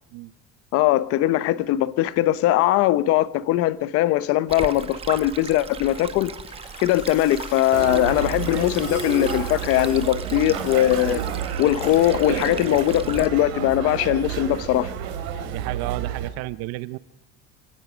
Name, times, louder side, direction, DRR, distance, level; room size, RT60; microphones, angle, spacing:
voice 1, 0.7-6.3 6.8-11.2 11.6-14.9, left 14 dB, 50° left, 0.9 m, -20 dB
Stream, 4.5-13.3, right 6 dB, 20° right, 0.9 m, -37 dB
sound 1, 5.8-12.2 13.5-13.6, left 8 dB, 70° left, 5.3 m, -46 dB
sound 2, 7.7-16.3, right 8 dB, 80° right, 3.6 m, -30 dB
voice 2, 15.4-17.0, right 18 dB, 55° right, 0.6 m, -32 dB
26.0 x 16.5 x 6.3 m
cardioid pair, 165°, 31 cm